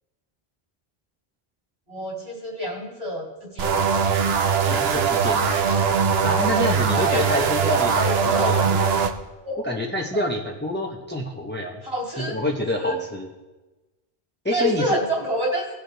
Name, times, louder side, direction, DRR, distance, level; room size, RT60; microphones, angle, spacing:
voice 1, 1.9-3.8 4.4-4.7 6.9-8.7 9.4-9.8 10.1-10.3 11.8-12.4 12.8-13.0 14.5-15.7, equal, 40° right, -3 dB, 2.9 m, -28 dB
sound 1, 3.6-9.1, right 6 dB, 75° right, 1.0 m, -21 dB
voice 2, 4.7-5.8 6.2-8.8 9.6-11.8 12.2-13.3 14.4-15.0, left 1 dB, 10° left, 0 dB, 0.8 m, -27 dB
17.5 x 6.5 x 3.4 m, 1.1 s
omnidirectional pair, 1.0 m